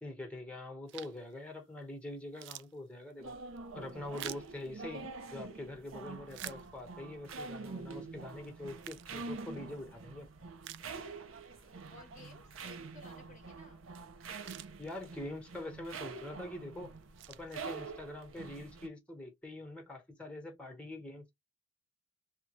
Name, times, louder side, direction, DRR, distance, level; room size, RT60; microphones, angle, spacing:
voice 1, 0.0-3.4 3.7-10.3 14.8-16.9 17.3-21.3, left 1 dB, 5° left, 1.1 m, -44 dB
sound 1, 0.9-1.3 1.8-1.9 2.2-5.4 5.9-7.2 7.7-7.8 8.5-9.8 10.2-10.3 10.6-11.5 11.8-11.9 13.9-14.0 14.2-15.4 16.0-16.3 16.8-18.1, right 13 dB, 60° right, 0.3 m, -49 dB
sound 2, 3.2-18.9, right 4 dB, 90° right, 0.7 m, -46 dB
voice 2, 11.5-13.9, left 3 dB, 40° left, 0.8 m, -57 dB
2.8 x 2.3 x 2.9 m
head